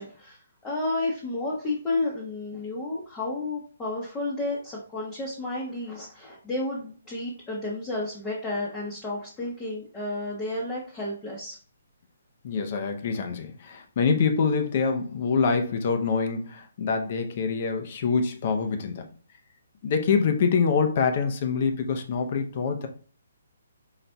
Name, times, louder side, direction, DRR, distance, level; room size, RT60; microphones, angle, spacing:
voice 1, 0.0-11.6, left 2 dB, 10° left, 0.9 m, -31 dB
voice 2, 12.4-19.1 19.8-22.9, left 5 dB, 40° left, 0.6 m, -25 dB
4.0 x 4.0 x 2.3 m
hypercardioid pair, 165°, 0 cm